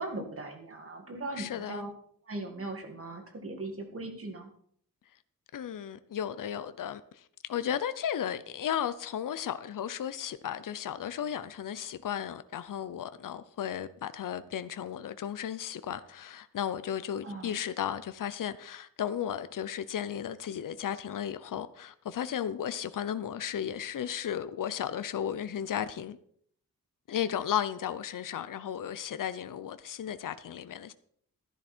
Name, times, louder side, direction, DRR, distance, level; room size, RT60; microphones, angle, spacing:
voice 1, 0.0-1.9 2.3-4.5 17.2-17.6, right 2 dB, 40° right, 2.2 m, -39 dB
voice 2, 1.4-1.9 5.5-7.2 7.5-26.2 27.1-30.9, left 9 dB, 65° left, 0.6 m, -34 dB
12.5 x 10.5 x 4.4 m
wide cardioid pair, 160°, 35 cm